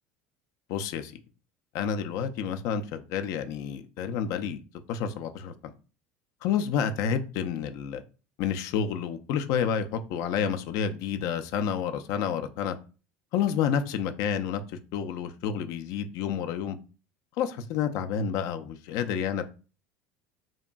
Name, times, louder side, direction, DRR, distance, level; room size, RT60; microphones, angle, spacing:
voice 1, 0.7-1.1 1.7-4.6 4.9-5.7 6.4-8.0 8.4-12.8 13.3-14.6 14.9-16.8 17.4-19.4, left 7 dB, 65° left, 0.4 m, -29 dB
2.8 x 2.5 x 2.2 m
supercardioid pair, 105°, 6 cm